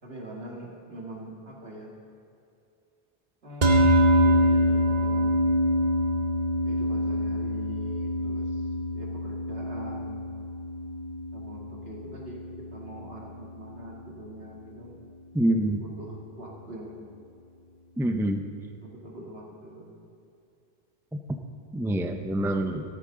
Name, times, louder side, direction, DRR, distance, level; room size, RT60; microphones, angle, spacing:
voice 1, 0.0-1.9 3.4-5.6 6.7-8.7 8.9-10.3 11.3-15.0 15.7-17.0 18.8-20.0, right 1 dB, 75° right, -2 dB, 2.4 m, -43 dB
sound 1, 3.6-14.1, equal, 45° right, 0.9 m, -25 dB
voice 2, 15.3-15.8 18.0-18.4 21.7-22.8, right 1 dB, 5° right, 6 dB, 0.5 m, -26 dB
15.5 x 13.5 x 3.8 m, 2.6 s
omnidirectional pair, 1.0 m